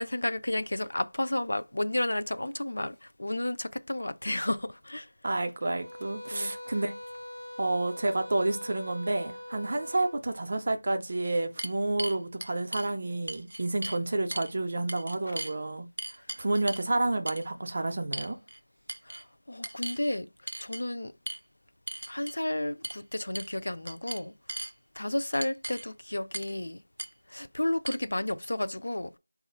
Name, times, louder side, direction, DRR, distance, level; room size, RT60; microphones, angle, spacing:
voice 1, 0.0-5.1 6.3-6.5 15.3-15.4 16.3-16.4 19.0-20.3 20.6-21.1 22.1-24.3 25.0-26.8 27.3-29.2, left 1 dB, 60° left, 0.4 m, -32 dB
voice 2, 5.2-6.9 7.6-15.9 16.4-18.4, right 2 dB, 30° right, 0.4 m, -30 dB
sound 1, 5.6-10.2, left 1 dB, 85° left, 1.0 m, -43 dB
sound 2, 11.0-12.9 13.3-14.0 14.3-14.5 14.9-15.5 16.0-16.9 17.3-17.5 18.1-18.6 18.9-19.2 19.6-20.0 20.5-20.8 21.3-21.4 21.9-22.4 22.8-23.0 23.3-23.6 23.9-24.7 25.3-25.9 26.3-26.6 27.0-27.1 27.9-28.0, right 1 dB, 90° right, 0.4 m, -38 dB
4.0 x 2.4 x 4.1 m
figure-of-eight pair, 175°, 0 cm